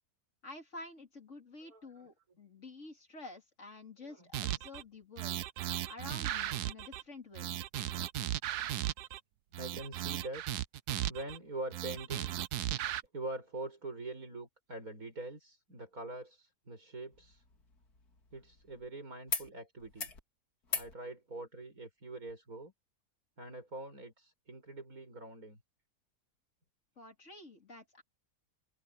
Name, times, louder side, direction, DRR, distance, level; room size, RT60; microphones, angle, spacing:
voice 1, 0.4-5.4 5.9-7.6 27.0-28.0, left 2 dB, 50° left, 3.2 m, -50 dB
voice 2, 1.7-2.1 4.1-4.3 9.6-10.4 11.1-12.3 13.1-17.4 18.3-20.1 20.7-22.7 23.4-25.6, right 2 dB, 65° right, 8.2 m, -44 dB
sound 1, 4.3-4.8 5.2-7.0 7.4-9.2 9.5-11.4 11.7-13.0, right 13 dB, 90° right, 1.3 m, -36 dB
sound 2, 17.1-18.9 19.3-19.5 19.8-20.2 20.6-20.9 22.3-22.4, left 4 dB, 75° left, 3.2 m, -40 dB
open air
omnidirectional pair, 1.6 m